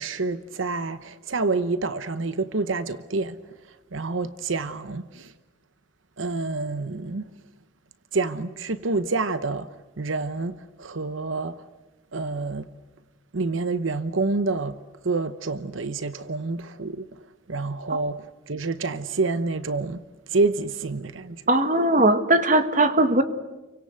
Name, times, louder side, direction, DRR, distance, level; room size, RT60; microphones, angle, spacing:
voice 1, 0.0-3.4 3.9-5.3 6.2-7.3 8.1-9.7 10.0-11.6 12.1-12.7 13.3-14.8 15.0-17.0 17.5-20.0 20.3-21.4, right 3 dB, 80° right, 0.9 m, -28 dB
voice 2, 21.5-23.2, right 1 dB, 40° right, 1.6 m, -19 dB
28.5 x 24.5 x 8.0 m
head